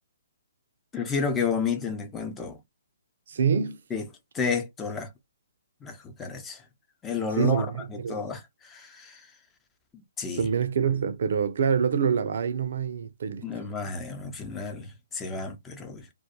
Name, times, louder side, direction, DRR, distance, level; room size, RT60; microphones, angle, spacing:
voice 1, 0.9-2.6 3.9-4.1 4.3-5.1 5.8-6.6 7.0-9.3 10.2-10.5 13.4-16.1, left 5 dB, 15° left, 0.6 m, -31 dB
voice 2, 3.3-3.8 7.4-8.2 10.3-13.4, right 7 dB, 60° right, 0.5 m, -26 dB
2.3 x 2.1 x 2.8 m
hypercardioid pair, 140°, 0 cm